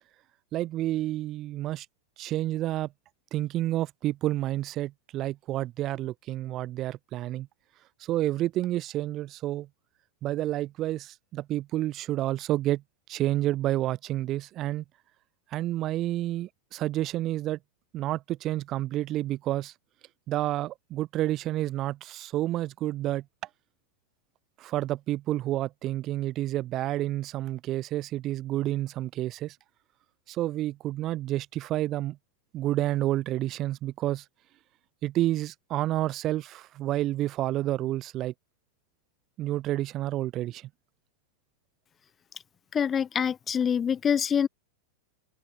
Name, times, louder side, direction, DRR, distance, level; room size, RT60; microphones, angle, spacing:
voice 1, 0.5-1.9 2.2-2.9 3.3-7.5 8.0-9.7 10.2-12.8 13.1-14.8 15.5-17.6 17.9-19.7 20.3-23.2 24.6-29.6 30.3-32.2 32.5-34.3 35.0-38.3 39.4-40.7, right 14 dB, 35° right, 0.3 m, -29 dB
voice 2, 42.7-44.5, left 7 dB, 20° left, 0.6 m, -25 dB
open air
figure-of-eight pair, 90°, 0 cm